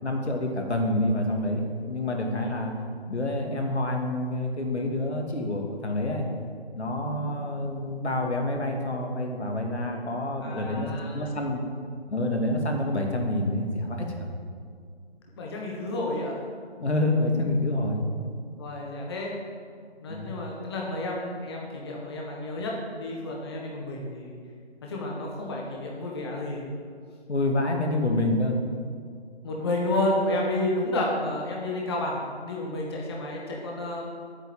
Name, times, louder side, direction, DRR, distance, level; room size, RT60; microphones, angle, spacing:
voice 1, 0.0-2.7 3.0-6.3 6.7-11.6 12.1-14.4 16.8-18.0 20.1-20.4 27.3-28.6, left 1 dB, 80° left, 1 dB, 2.3 m, -27 dB
voice 2, 7.2-7.5 10.4-11.2 15.3-16.4 18.6-19.3 20.0-24.4 24.8-26.7 29.4-34.0, left 1 dB, 25° left, -2 dB, 1.3 m, -31 dB
9.0 x 7.1 x 8.4 m, 2.1 s
figure-of-eight pair, 165°, 33 cm